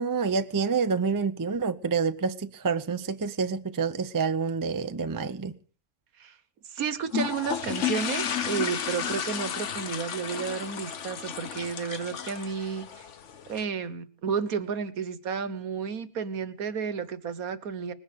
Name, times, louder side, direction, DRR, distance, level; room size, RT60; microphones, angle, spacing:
voice 1, 0.0-5.6, right 5 dB, 25° right, 0.4 m, -28 dB
voice 2, 6.7-13.1 13.5-17.9, right 6 dB, 70° right, 1.6 m, -32 dB
sound 1, 7.1-13.6, left 8 dB, 55° left, 1.2 m, -33 dB
20.0 x 10.5 x 6.7 m
omnidirectional pair, 1.6 m